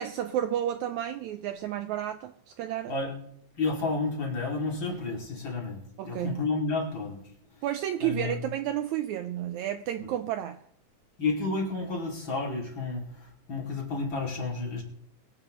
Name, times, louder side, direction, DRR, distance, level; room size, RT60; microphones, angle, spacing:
voice 1, 0.0-2.9 6.0-6.4 7.6-10.6, right 11 dB, 85° right, 1.7 m, -31 dB
voice 2, 3.5-7.2 7.5-7.6 8.0-8.4 11.2-14.8, left 3 dB, 35° left, 2.8 m, -31 dB
23.0 x 8.8 x 3.0 m
omnidirectional pair, 3.9 m